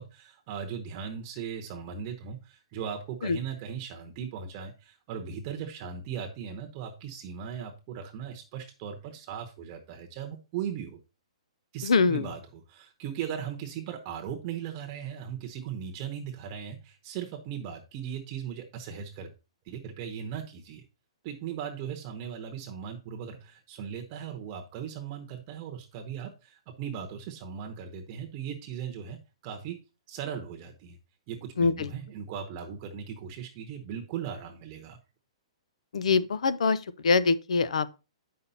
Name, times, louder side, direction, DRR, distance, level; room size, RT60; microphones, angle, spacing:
voice 1, 0.0-11.0 11.7-19.3 19.6-20.8 21.2-29.8 30.1-31.0 31.3-35.0, right 8 dB, 30° right, 0.9 m, -38 dB
voice 2, 11.8-12.3 31.6-31.9 35.9-37.9, left 4 dB, 80° left, 0.7 m, -24 dB
8.4 x 5.6 x 4.1 m
hypercardioid pair, 165°, 3 cm